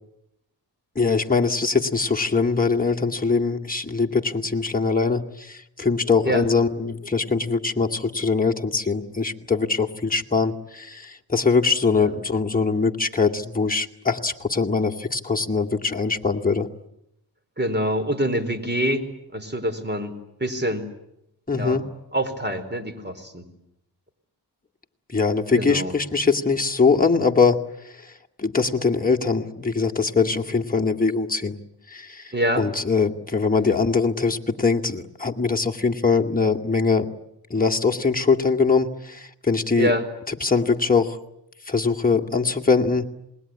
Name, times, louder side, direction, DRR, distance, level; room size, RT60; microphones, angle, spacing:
voice 1, 1.0-16.7 21.5-21.8 25.1-27.6 28.4-31.6 31.9-37.0 37.5-39.9 40.3-41.2 41.7-43.1, left 4 dB, 20° left, 1 dB, 2.3 m, -22 dB
voice 2, 17.6-19.1 19.3-20.1 20.4-20.8 21.5-21.8 22.1-23.4 25.6-25.9 32.3-32.7 33.7-33.8 39.8-40.0, equal, 25° right, 10 dB, 4.7 m, -25 dB
27.5 x 21.0 x 9.8 m, 0.83 s
cardioid pair, 55°, 41 cm